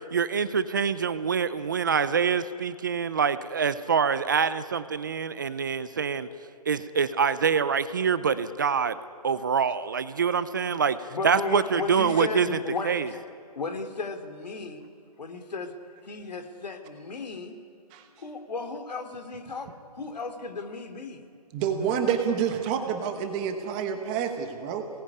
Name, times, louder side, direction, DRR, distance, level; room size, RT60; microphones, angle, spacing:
voice 1, 0.1-6.3 6.7-9.0 9.2-11.0 11.2-12.5 12.8-13.1, right 6 dB, 30° right, 14 dB, 0.6 m, -25 dB
voice 2, 11.1-13.2 13.5-14.8 15.2-15.7 16.0-17.6 18.2-21.2, left 4 dB, 90° left, 7 dB, 3.1 m, -35 dB
voice 3, 21.5-24.8, right 7 dB, 10° right, 6 dB, 1.0 m, -28 dB
26.5 x 19.0 x 9.7 m, 2.6 s
hypercardioid pair, 175°, 21 cm